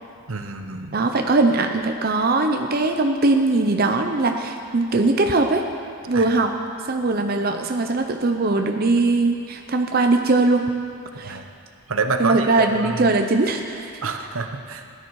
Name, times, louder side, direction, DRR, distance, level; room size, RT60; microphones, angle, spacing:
voice 1, 0.3-1.0 6.1-6.3 11.2-11.5 11.9-12.5 12.7-13.1 14.0-14.9, right 4 dB, 85° right, 6 dB, 0.9 m, -27 dB
voice 2, 0.9-5.6 6.1-6.5 6.9-10.6 11.2-11.4 12.2-14.1, right 3 dB, 45° right, 4 dB, 0.7 m, -20 dB
17.0 x 10.0 x 4.7 m, 2.3 s
head